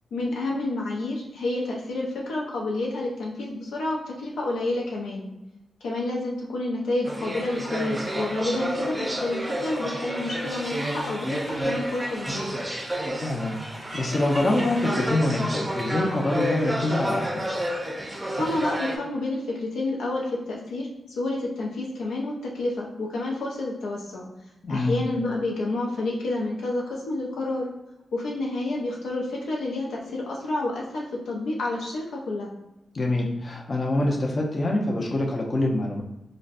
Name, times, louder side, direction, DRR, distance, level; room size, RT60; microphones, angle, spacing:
voice 1, 0.1-5.3 5.8-12.5 18.3-20.9 21.2-24.3 24.7-27.7 28.1-32.5, left 2 dB, 90° left, -2 dB, 0.5 m, -29 dB
sound 1, 7.0-19.0, right 1 dB, 20° right, 0.5 m, -30 dB
voice 2, 13.2-17.4 24.6-25.0 32.9-36.0, left 2 dB, 45° left, -1 dB, 0.6 m, -25 dB
3.8 x 2.1 x 2.5 m, 0.94 s
cardioid pair, 65°, 0 cm